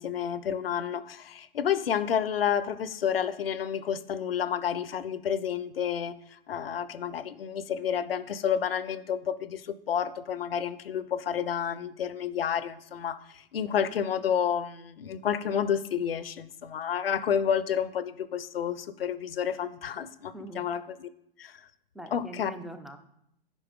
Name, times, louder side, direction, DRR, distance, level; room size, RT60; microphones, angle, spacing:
voice 1, 0.0-21.1 21.4-21.6 22.1-22.5, left 8 dB, 75° left, 14 dB, 0.6 m, -30 dB
voice 2, 20.3-20.7 21.9-23.0, right 1 dB, ahead, 8 dB, 0.3 m, -42 dB
9.0 x 5.4 x 3.6 m, 0.76 s
figure-of-eight pair, 105°, 29 cm